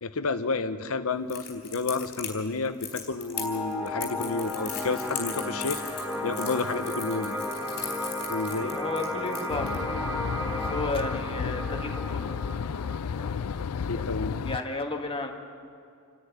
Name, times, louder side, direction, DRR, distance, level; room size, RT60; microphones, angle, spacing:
voice 1, 0.0-5.8 6.2-7.4 7.8-8.0 8.3-8.8 13.8-14.3, left 3 dB, 70° left, 10 dB, 1.0 m, -31 dB
Crackle, 1.3-9.7, left 8 dB, 45° left, 4.0 m, -38 dB
sound 1, 3.3-14.4, left 1 dB, ahead, 1.6 m, -34 dB
voice 2, 8.7-12.4 13.9-14.0 14.4-15.3, left 2 dB, 25° left, 2 dB, 1.8 m, -33 dB
sound 2, 9.5-14.6, left 6 dB, 85° left, 0.4 m, -32 dB
27.5 x 10.5 x 9.7 m, 2.4 s
head